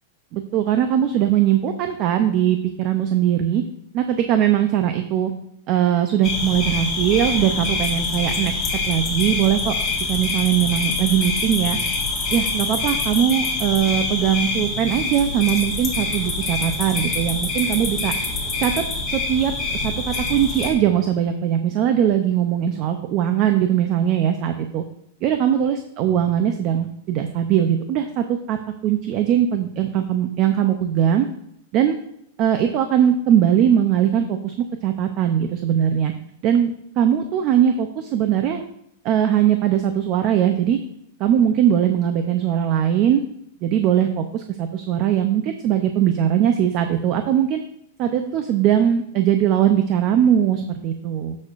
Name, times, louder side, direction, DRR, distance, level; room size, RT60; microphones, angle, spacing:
voice 1, 0.3-3.6 3.9-5.3 5.7-8.5 8.9-9.7 10.1-11.8 12.3-18.1 18.6-18.8 19.1-24.8 25.2-28.6 28.8-31.3 31.7-32.0 32.4-34.5 34.8-36.1 36.4-38.6 39.0-40.8 41.2-43.2 43.6-47.6 48.0-51.4, right 10 dB, 25° right, 7 dB, 0.5 m, -20 dB
sound 1, 6.2-20.7, left 3 dB, 15° left, 1.5 m, -25 dB
15.0 x 6.3 x 2.5 m, 0.78 s
supercardioid pair, 180°, 0 cm